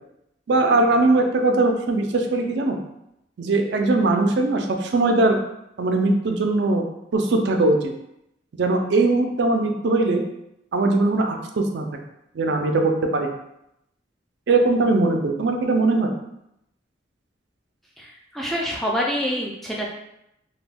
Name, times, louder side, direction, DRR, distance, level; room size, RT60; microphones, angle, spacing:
voice 1, 0.5-2.8 3.4-5.4 5.8-6.9 7.1-7.9 8.6-10.2 10.7-11.9 12.3-13.4 14.5-16.1, right 2 dB, 65° right, 4 dB, 0.4 m, -20 dB
voice 2, 18.0-19.9, equal, ahead, -3 dB, 0.3 m, -26 dB
2.3 x 2.2 x 3.3 m, 0.81 s
head